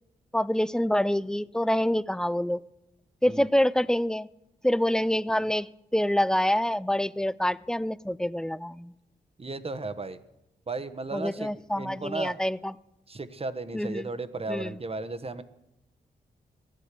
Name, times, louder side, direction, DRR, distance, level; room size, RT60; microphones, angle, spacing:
voice 1, 0.3-2.6 3.2-4.3 4.6-8.9 11.1-12.7 13.7-14.1 14.5-14.8, left 1 dB, 5° left, 18 dB, 0.5 m, -26 dB
voice 2, 9.4-10.2 10.7-12.4 13.1-15.4, right 3 dB, 35° right, 11 dB, 1.1 m, -35 dB
14.5 x 10.0 x 6.8 m, 0.91 s
supercardioid pair, 45°, 18 cm